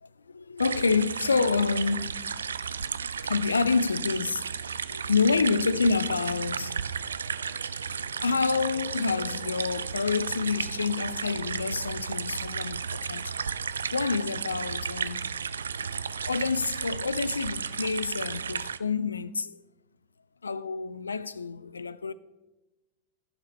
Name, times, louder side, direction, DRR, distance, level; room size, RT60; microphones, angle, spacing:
voice 1, 0.0-2.5 3.2-4.5 4.9-6.8 7.9-13.3 13.9-15.3 16.3-19.6 20.4-22.1, left 4 dB, 75° left, 0.3 m, -28 dB
sound 1, 0.6-18.8, right 6 dB, 70° right, 0.3 m, -33 dB
14.5 x 5.9 x 4.2 m
figure-of-eight pair, 90°, 0 cm